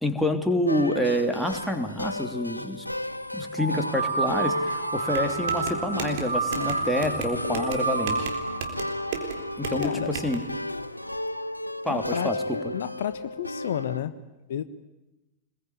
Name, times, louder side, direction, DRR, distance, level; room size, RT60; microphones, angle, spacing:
voice 1, 0.0-2.8 3.3-8.3 9.6-10.4 11.8-12.3, left 1 dB, ahead, 3 dB, 3.1 m, -27 dB
sound 1, 0.7-14.0, left 1 dB, 85° left, 0.9 m, -34 dB
sound 2, 3.5-10.3, right 3 dB, 85° right, 3.0 m, -30 dB
sound 3, 5.1-10.3, right 7 dB, 55° right, 3.9 m, -36 dB
voice 2, 9.8-10.1 11.9-14.1 14.5-14.6, left 10 dB, 60° left, 12 dB, 1.2 m, -31 dB
26.0 x 21.5 x 9.6 m, 1.0 s
figure-of-eight pair, 90°, 0 cm